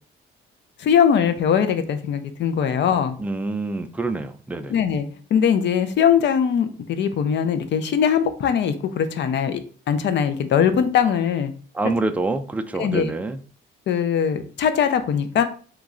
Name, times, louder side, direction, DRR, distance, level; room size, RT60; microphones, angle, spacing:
voice 1, 0.8-3.2 4.7-9.6 9.9-11.5 12.8-13.1 13.9-15.4, left 8 dB, 65° left, 0.5 m, -21 dB
voice 2, 3.2-4.7 11.7-13.4, right 2 dB, 5° right, 0.3 m, -26 dB
3.1 x 2.3 x 3.6 m
cardioid pair, 90°, 20 cm